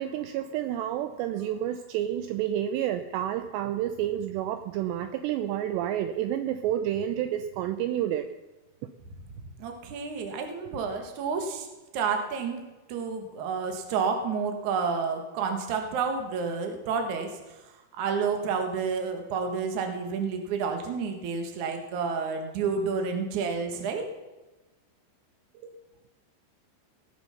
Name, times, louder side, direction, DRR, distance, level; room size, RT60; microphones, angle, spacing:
voice 1, 0.0-8.3, right 11 dB, 85° right, 9 dB, 2.5 m, -29 dB
voice 2, 9.6-11.7 11.9-12.6 12.9-17.3 17.9-24.1, right 5 dB, 60° right, 5 dB, 2.0 m, -30 dB
18.5 x 8.8 x 5.7 m, 1.1 s
omnidirectional pair, 5.6 m